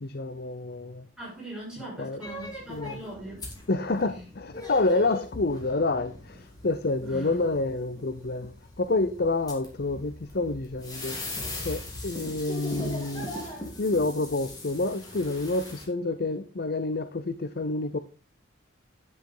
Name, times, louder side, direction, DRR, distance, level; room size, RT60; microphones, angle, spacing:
voice 1, 0.0-1.1 2.0-2.2 2.7-3.0 3.7-11.2 11.6-13.3 13.8-18.0, left 2 dB, 50° left, 0.7 m, -28 dB
voice 2, 1.2-3.4 4.1-4.2 7.0-7.4, right 1 dB, 5° right, 7.2 m, -41 dB
sound 1, 2.2-15.8, left 1 dB, 20° left, 3.0 m, -40 dB
10.5 x 9.9 x 3.8 m
head